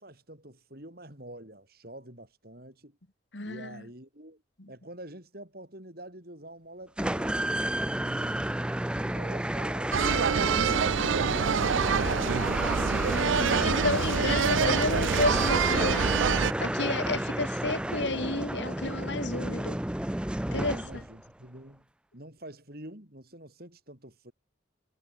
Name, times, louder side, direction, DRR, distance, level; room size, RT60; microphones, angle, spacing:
voice 1, 0.0-3.0 3.4-4.4 4.7-7.6 8.0-8.4 8.9-10.4 20.5-21.9 22.1-24.3, right 1 dB, 50° right, 6.0 m, -47 dB
voice 2, 3.3-3.8 4.6-4.7 13.1-16.1 16.6-19.8 20.5-20.8, left 3 dB, 70° left, 2.3 m, -31 dB
sound 1, 7.0-21.2, right 1 dB, 5° right, 0.4 m, -31 dB
sound 2, 9.9-16.5, right 6 dB, 85° right, 0.6 m, -26 dB
head